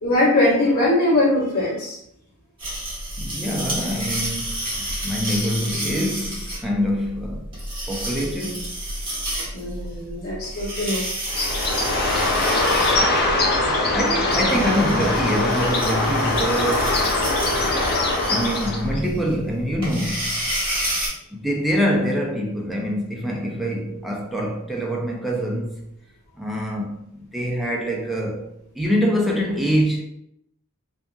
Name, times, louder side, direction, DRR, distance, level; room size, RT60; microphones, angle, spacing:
voice 1, 0.0-2.0 9.5-11.1 17.7-18.1, left 1 dB, 80° left, 1.1 m, -21 dB
sound 1, 2.6-21.1, right 1 dB, 25° right, 1.1 m, -30 dB
voice 2, 3.2-7.5 7.9-8.7 13.9-17.3 18.3-20.3 21.3-25.8 26.4-30.0, equal, ahead, 0.3 m, -25 dB
Bird, 11.3-19.0, left 2 dB, 45° left, 0.6 m, -22 dB
2.6 x 2.5 x 2.2 m
head